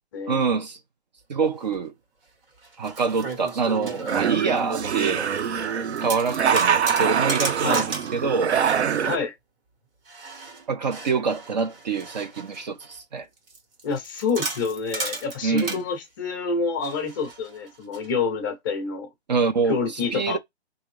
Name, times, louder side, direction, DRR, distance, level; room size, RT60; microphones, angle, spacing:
voice 1, 0.3-0.8 1.3-1.9 2.8-5.2 6.0-7.8 8.1-8.6 10.7-13.3 15.4-15.8 19.3-19.8 20.1-20.4, right 5 dB, 40° right, 0.5 m, -25 dB
sound 1, 1.7-1.8 2.6-5.7 6.0-8.2 10.1-13.0 13.5-15.8 16.8-18.1, right 3 dB, 60° right, 1.7 m, -34 dB
sound 2, 3.8-9.2, right 8 dB, 90° right, 0.6 m, -24 dB
voice 2, 9.0-9.3 13.8-19.1 19.7-20.4, left 4 dB, 20° left, 0.6 m, -27 dB
3.6 x 2.7 x 3.1 m
hypercardioid pair, 155°, 32 cm